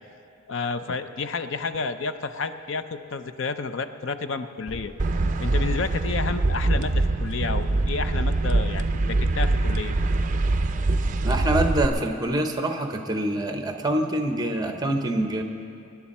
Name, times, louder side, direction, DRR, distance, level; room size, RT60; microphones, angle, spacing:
voice 1, 0.5-4.9 5.4-9.9, left 4 dB, 60° left, 10 dB, 0.5 m, -30 dB
sound 1, 4.7-5.0 5.8-6.1 6.7-7.2 7.7-8.1 8.9-9.3 10.0-10.3 10.8-10.9 11.2-11.3, right 1 dB, 80° left, 4.3 m, -36 dB
sound 2, 5.0-11.9, right 2 dB, 35° right, 0.5 m, -23 dB
voice 2, 11.2-15.4, right 1 dB, 20° right, 5 dB, 0.8 m, -25 dB
25.0 x 10.5 x 4.3 m, 2.6 s
head